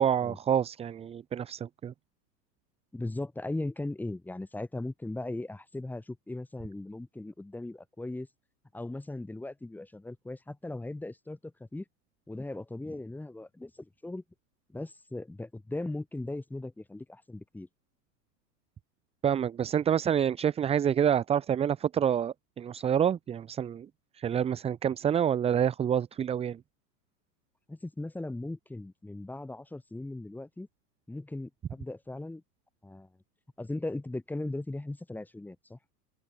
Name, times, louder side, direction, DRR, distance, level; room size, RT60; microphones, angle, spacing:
voice 1, 0.0-1.9 19.2-23.9 24.1-26.6, right 9 dB, 10° right, 1.3 m, -27 dB
voice 2, 2.9-8.3 8.7-11.8 12.3-14.2 14.7-17.7 27.7-30.7 31.1-32.4 32.8-33.1 33.6-35.8, left 2 dB, 5° left, 4.1 m, -38 dB
open air
supercardioid pair, 155°, 50 cm